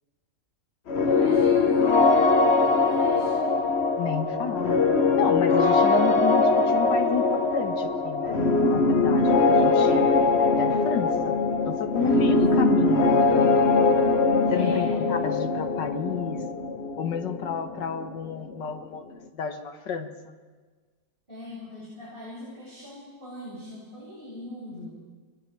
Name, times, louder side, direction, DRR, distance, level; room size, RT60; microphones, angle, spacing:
sound 1, 0.9-18.5, left 3 dB, 45° left, 1.2 m, -22 dB
voice 1, 1.0-3.3 12.0-12.4 14.5-15.0 21.3-24.9, left 1 dB, 30° right, -9 dB, 8.2 m, -40 dB
voice 2, 4.0-4.8 5.2-8.4 8.7-10.1 10.6-11.4 11.7-13.6 14.5-16.4 17.0-19.0 19.3-20.4, left 6 dB, 85° left, 6 dB, 2.0 m, -31 dB
29.0 x 22.5 x 4.7 m, 1.4 s
omnidirectional pair, 1.9 m